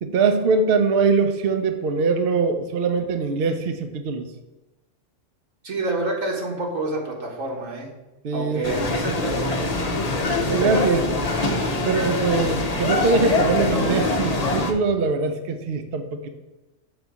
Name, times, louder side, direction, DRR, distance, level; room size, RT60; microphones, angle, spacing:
voice 1, 0.0-4.3 8.2-8.8 10.5-11.0 11.8-16.3, right 4 dB, 55° right, 7 dB, 0.8 m, -22 dB
voice 2, 5.6-7.9 8.3-9.7 10.6-11.0, right 2 dB, 80° right, -1 dB, 1.9 m, -27 dB
sound 1, 8.6-14.7, left 2 dB, 40° left, 0.7 m, -24 dB
6.9 x 4.1 x 6.1 m, 1.1 s
omnidirectional pair, 1.3 m